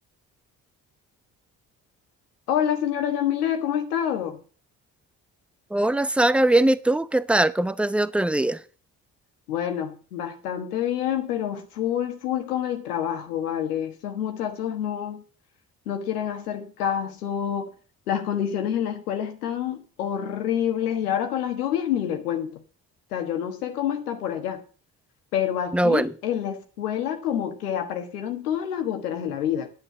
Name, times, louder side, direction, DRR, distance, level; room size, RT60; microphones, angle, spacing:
voice 1, 2.5-4.4 9.5-15.2 15.9-17.7 18.1-22.6 23.1-24.6 25.3-29.7, left 9 dB, 90° left, 1.4 m, -27 dB
voice 2, 5.7-8.6 25.7-26.1, right 1 dB, 5° right, 0.6 m, -21 dB
9.6 x 8.8 x 6.0 m
hypercardioid pair, 50°, 44 cm